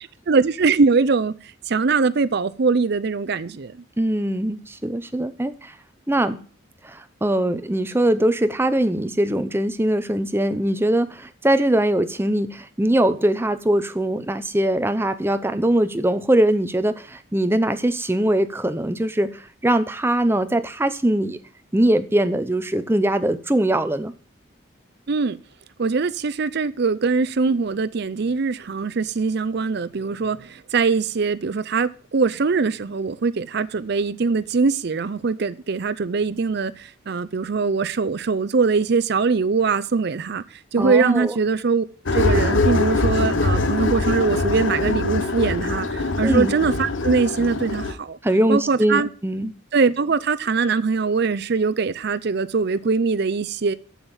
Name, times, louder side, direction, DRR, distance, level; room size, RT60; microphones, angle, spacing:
voice 1, 0.3-1.3 1.7-3.7 25.1-25.4 25.8-40.4 40.7-41.8 42.1-48.2 48.5-49.1 49.7-53.7, right 4 dB, 55° right, 0.5 m, -22 dB
voice 2, 4.0-5.7 6.1-6.4 6.8-21.4 21.7-24.1 27.5-27.6 40.8-41.3 46.2-46.5 48.2-49.5, right 1 dB, 10° right, 0.6 m, -21 dB
sound 1, 42.1-47.9, left 2 dB, 70° left, 1.0 m, -23 dB
7.2 x 7.2 x 7.3 m
head